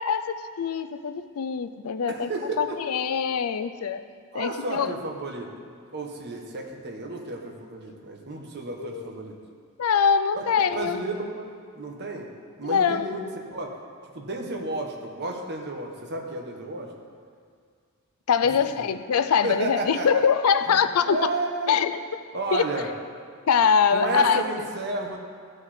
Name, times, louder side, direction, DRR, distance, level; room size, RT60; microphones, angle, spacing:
voice 1, 0.0-2.3 2.6-4.0 4.3-4.9 8.8-9.1 9.8-11.0 12.6-13.1 18.3-21.2 21.7-21.9 22.5-22.7 23.5-24.4, left 6 dB, 75° left, 11 dB, 0.4 m, -23 dB
voice 2, 2.1-2.8 4.3-5.7 5.9-9.4 10.3-10.4 10.7-12.3 12.6-13.2 13.5-13.8 14.1-16.9 18.5-18.9 19.4-20.2 20.7-21.8 22.3-22.9 23.9-25.2, right 2 dB, 50° right, 1 dB, 1.1 m, -32 dB
14.0 x 4.9 x 4.3 m, 2.1 s
head